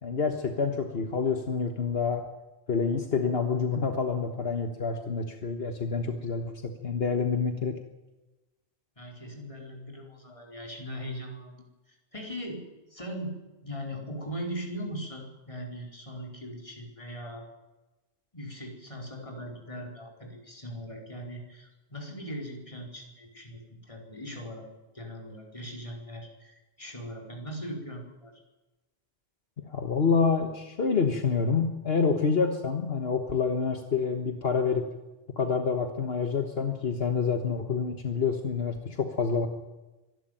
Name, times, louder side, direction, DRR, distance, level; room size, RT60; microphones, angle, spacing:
voice 1, 0.0-2.3 2.7-7.8 29.7-34.9 35.4-39.5, left 5 dB, 70° left, 5 dB, 1.7 m, -27 dB
voice 2, 9.0-11.6 11.9-12.6 12.9-17.5 18.3-24.7 24.9-28.3, equal, 30° left, 0 dB, 4.5 m, -40 dB
24.5 x 11.5 x 9.2 m, 1.1 s
omnidirectional pair, 1.1 m